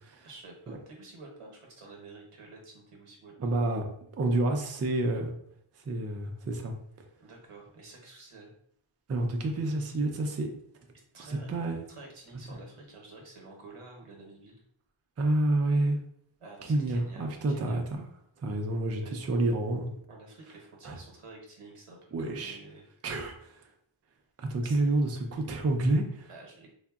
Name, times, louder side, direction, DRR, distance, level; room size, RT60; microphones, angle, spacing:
voice 1, 0.2-3.5 7.2-8.5 11.1-11.5 11.9-14.6 16.4-17.8 19.0-19.1 20.1-23.3 24.6-24.8 26.3-26.7, right 3 dB, 90° right, 0 dB, 0.9 m, -50 dB
voice 2, 3.4-3.8 4.1-5.3 5.9-6.7 9.1-10.5 11.2-11.8 15.2-16.0 16.7-18.1 18.4-19.9 20.8-21.0 22.1-22.6 23.0-23.6 24.4-26.3, right 2 dB, 35° right, 3 dB, 0.4 m, -29 dB
3.6 x 2.1 x 2.3 m, 0.66 s
wide cardioid pair, 65°, 50 cm